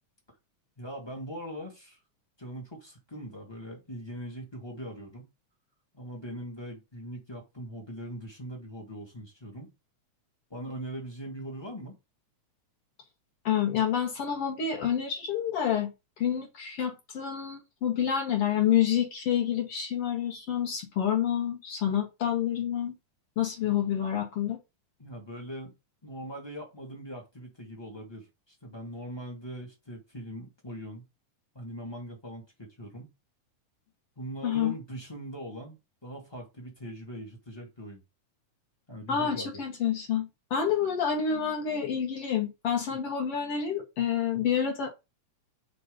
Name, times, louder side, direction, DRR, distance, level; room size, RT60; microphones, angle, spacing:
voice 1, 0.8-2.0 2.4-5.3 5.9-9.7 10.5-11.9 23.6-23.7 25.0-25.7 26.0-31.0 31.5-33.1 34.2-38.0 38.9-39.6, equal, 30° left, 0.4 m, -41 dB
voice 2, 13.5-15.9 16.2-23.0 23.4-24.6 34.4-34.7 39.1-44.9, left 8 dB, 60° left, 1.7 m, -28 dB
5.2 x 3.8 x 5.0 m
omnidirectional pair, 3.6 m